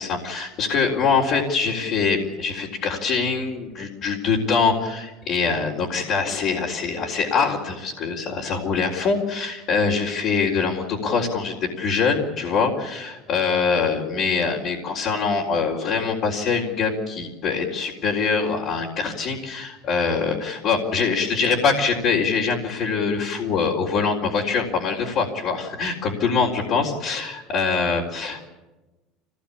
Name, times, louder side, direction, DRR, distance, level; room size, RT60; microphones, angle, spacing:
voice 1, 0.0-28.5, left 5 dB, 55° left, -3 dB, 3.9 m, -23 dB
25.5 x 18.5 x 8.6 m, 1.1 s
supercardioid pair, 115°, 0 cm